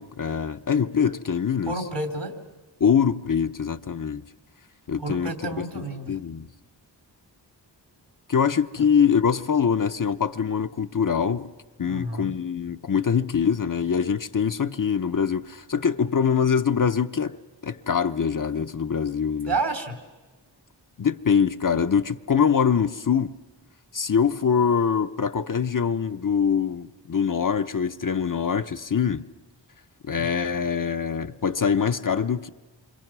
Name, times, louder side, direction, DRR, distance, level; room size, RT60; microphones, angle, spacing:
voice 1, 0.0-1.7 2.8-4.2 4.9-5.3 6.1-6.5 8.3-11.5 11.8-17.4 17.6-19.5 21.0-23.3 23.9-29.2 30.1-32.5, left 7 dB, 45° left, 0.8 m, -23 dB
voice 2, 1.7-2.3 5.0-6.1 8.8-8.9 11.8-12.3 19.5-20.0 30.1-30.3, right 2 dB, 65° right, 3.2 m, -30 dB
27.5 x 25.5 x 6.1 m
wide cardioid pair, 60°, 45 cm